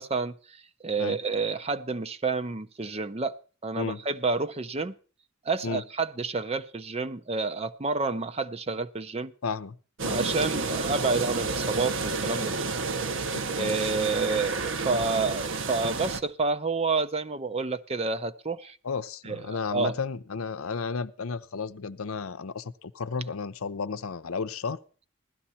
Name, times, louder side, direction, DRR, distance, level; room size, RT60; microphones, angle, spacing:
voice 1, 0.0-3.4 3.6-4.9 5.4-9.3 10.1-12.7 13.6-18.8 19.2-19.9, right 4 dB, 30° right, 0.5 m, -29 dB
voice 2, 9.4-9.8 10.0-10.2 13.3-13.8 18.8-24.8, left 5 dB, 75° left, 0.7 m, -33 dB
sound 1, 10.0-16.2, right 3 dB, 60° right, 0.8 m, -30 dB
16.0 x 12.5 x 4.2 m
head